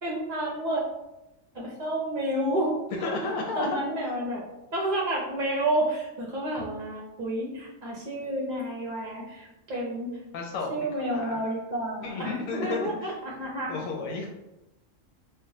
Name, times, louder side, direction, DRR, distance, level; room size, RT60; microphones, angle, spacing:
voice 1, 0.0-0.8 1.5-4.4 4.7-10.1 10.7-13.8, right 1 dB, 50° right, -3 dB, 0.6 m, -30 dB
voice 2, 3.0-3.7 10.3-11.4 12.0-13.2 13.7-14.3, left 3 dB, 85° left, -1 dB, 1.0 m, -33 dB
4.6 x 2.1 x 2.7 m, 0.95 s
omnidirectional pair, 1.4 m